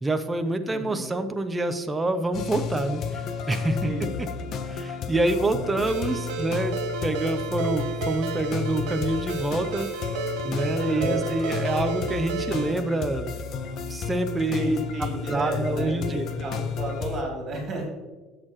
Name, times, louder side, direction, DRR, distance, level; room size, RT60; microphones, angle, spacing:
voice 1, 0.0-4.3 4.6-6.8 7.0-9.9 10.4-13.4 13.9-14.8 15.2-16.2, right 2 dB, 10° right, 7 dB, 0.6 m, -27 dB
voice 2, 0.7-1.0 3.8-4.1 10.7-11.3 14.5-17.9, equal, 35° right, 0 dB, 2.9 m, -31 dB
sound 1, 2.3-17.2, left 6 dB, 40° left, 0.6 m, -32 dB
Ringtone, 5.9-12.7, right 5 dB, 90° right, 1.2 m, -32 dB
14.5 x 6.6 x 3.1 m, 1.3 s
cardioid pair, 150°, 0 cm